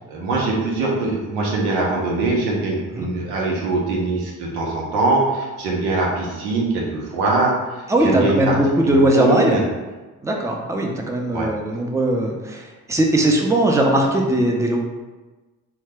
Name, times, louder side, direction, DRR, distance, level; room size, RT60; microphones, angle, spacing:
voice 1, 0.1-8.6 8.9-9.6 11.3-11.5, right 3 dB, 85° right, -2 dB, 0.7 m, -22 dB
voice 2, 7.9-9.6 10.2-14.8, right 1 dB, 10° right, 0 dB, 0.5 m, -19 dB
2.7 x 2.2 x 3.3 m, 1.2 s
hypercardioid pair, 45°, 38 cm